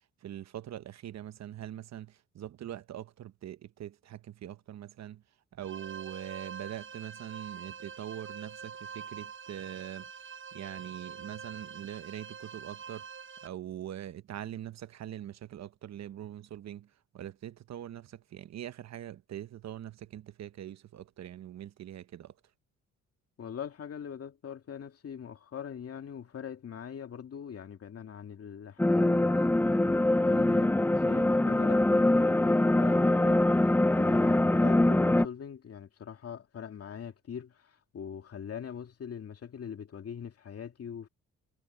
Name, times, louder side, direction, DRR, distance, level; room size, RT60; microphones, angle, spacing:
voice 1, 0.2-5.2 5.6-10.1 10.5-13.0 13.4-16.9 17.1-22.3, right 11 dB, 60° right, 1.0 m, -43 dB
sound 1, 5.6-13.5, right 6 dB, 40° right, 4.9 m, -45 dB
voice 2, 23.4-41.1, left 8 dB, 50° left, 2.4 m, -42 dB
sound 2, 28.8-35.3, left 1 dB, 5° left, 0.6 m, -24 dB
cardioid pair, 90°, 30 cm